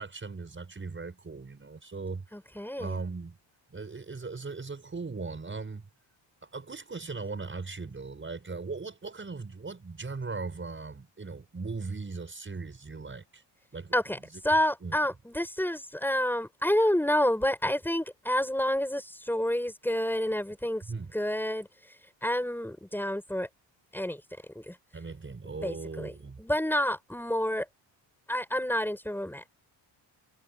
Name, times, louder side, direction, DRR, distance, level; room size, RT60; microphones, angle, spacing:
voice 1, 0.0-2.2 2.5-3.4 3.7-5.8 6.4-13.4 13.7-14.4 14.8-15.0 20.8-21.1 24.9-26.4, right 4 dB, 25° right, 6.7 m, -39 dB
voice 2, 2.3-3.0 13.9-14.2 14.4-20.8 21.1-21.7 22.2-23.5 23.9-24.2 24.6-24.8 25.6-26.1 26.4-27.7 28.3-29.5, left 1 dB, 5° left, 7.3 m, -29 dB
cardioid pair, 115°, 45 cm